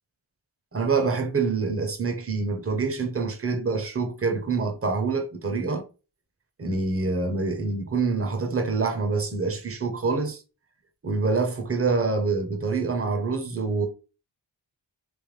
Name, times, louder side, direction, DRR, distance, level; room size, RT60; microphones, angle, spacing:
voice 1, 0.7-5.8 6.6-10.4 11.0-13.9, right 4 dB, 30° right, 0.9 m, -26 dB
3.4 x 3.0 x 3.3 m
cardioid pair, 55°, 46 cm